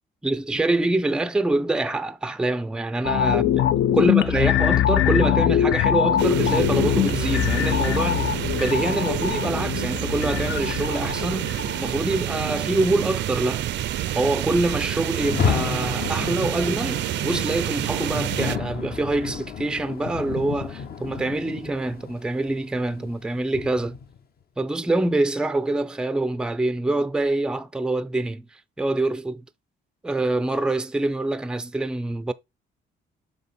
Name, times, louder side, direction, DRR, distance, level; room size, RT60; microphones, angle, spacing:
voice 1, 0.2-3.7 4.0-13.7 14.1-24.0 24.6-28.5 28.8-29.4 30.0-32.3, right 2 dB, 5° right, 0.4 m, -25 dB
sound 1, 3.0-12.4 12.7-12.8, left 10 dB, 70° left, 0.4 m, -23 dB
sound 2, 6.2-18.6, right 12 dB, 65° right, 0.5 m, -28 dB
Rain, 15.1-24.2, left 7 dB, 50° left, 0.9 m, -31 dB
6.8 x 3.3 x 4.2 m
cardioid pair, 90°, 20 cm